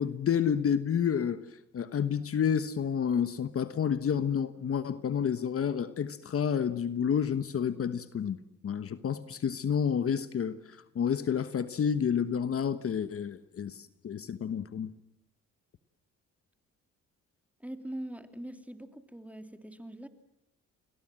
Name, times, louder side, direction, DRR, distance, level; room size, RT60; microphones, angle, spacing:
voice 1, 0.0-1.4 1.7-8.4 8.6-14.9, left 7 dB, 50° left, 12 dB, 1.3 m, -30 dB
voice 2, 17.6-20.1, right 1 dB, 5° right, 8 dB, 2.8 m, -42 dB
29.5 x 22.5 x 7.7 m, 0.83 s
cardioid pair, 90°, 30 cm